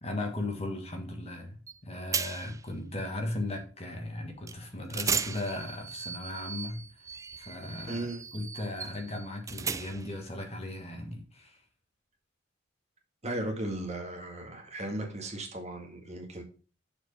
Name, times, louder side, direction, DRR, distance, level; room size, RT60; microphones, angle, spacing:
voice 1, 0.0-6.8 7.4-8.1 8.3-11.6, left 2 dB, 35° left, 4 dB, 1.5 m, -37 dB
sound 1, 1.7-1.8 2.1-2.6 4.5-4.6 4.9-10.2, right 6 dB, 15° right, 0.3 m, -36 dB
voice 2, 7.9-8.2 13.2-16.4, right 1 dB, 35° right, 2 dB, 1.8 m, -36 dB
7.0 x 4.7 x 5.4 m, 0.38 s
head